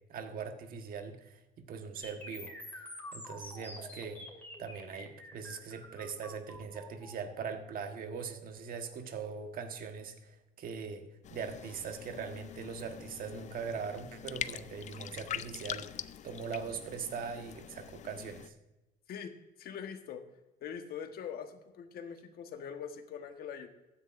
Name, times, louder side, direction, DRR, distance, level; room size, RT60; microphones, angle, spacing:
voice 1, 0.1-4.3 4.6-11.0 11.3-15.9 16.2-18.5, right 6 dB, 60° right, 6 dB, 1.4 m, -41 dB
sound 1, 2.0-10.0, left 1 dB, 10° left, 2.6 m, -49 dB
sound 2, 11.2-18.5, left 10 dB, 45° left, 0.4 m, -44 dB
voice 2, 19.1-20.2 20.6-23.7, left 7 dB, 65° left, 7 dB, 1.3 m, -43 dB
15.0 x 10.0 x 2.6 m, 1.0 s
cardioid pair, 110°, 17 cm